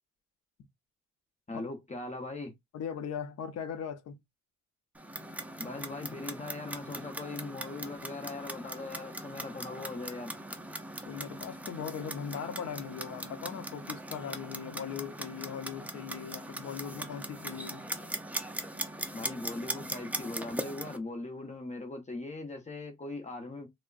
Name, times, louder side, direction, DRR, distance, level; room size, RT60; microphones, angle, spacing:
voice 1, 1.5-2.5 5.6-10.3 19.1-23.7, left 2 dB, 25° left, 0.8 m, -40 dB
voice 2, 2.7-4.2 11.0-17.8, left 7 dB, 60° left, 0.7 m, -39 dB
Clock, 4.9-21.0, right 1 dB, 5° right, 0.5 m, -40 dB
3.4 x 2.1 x 2.4 m
cardioid pair, 90°, 30 cm